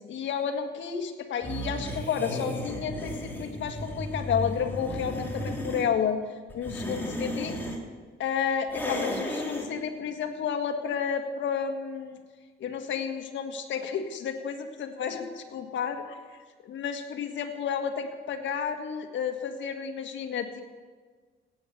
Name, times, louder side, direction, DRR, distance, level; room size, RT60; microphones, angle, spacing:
voice 1, 0.1-6.2 6.5-7.6 8.2-12.2 12.6-16.2 16.6-20.6, left 7 dB, 70° left, 5 dB, 1.8 m, -31 dB
sound 1, 1.4-5.9 6.5-7.8 8.7-9.7, equal, 10° left, 3.2 m, -34 dB
17.5 x 9.0 x 6.9 m, 1.5 s
cardioid pair, 90°, 20 cm